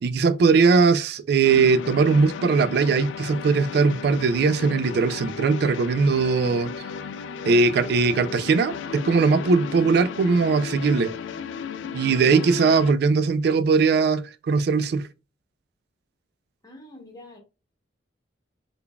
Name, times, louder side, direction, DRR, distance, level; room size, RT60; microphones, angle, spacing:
voice 1, 0.0-6.7 7.4-11.1 11.9-15.1, right 4 dB, 55° right, 0.3 m, -20 dB
sound 1, 1.4-12.9, left 6 dB, 80° left, 0.3 m, -35 dB
voice 2, 12.2-12.5 16.6-17.4, left 2 dB, 20° left, 0.9 m, -46 dB
3.7 x 3.4 x 2.3 m
head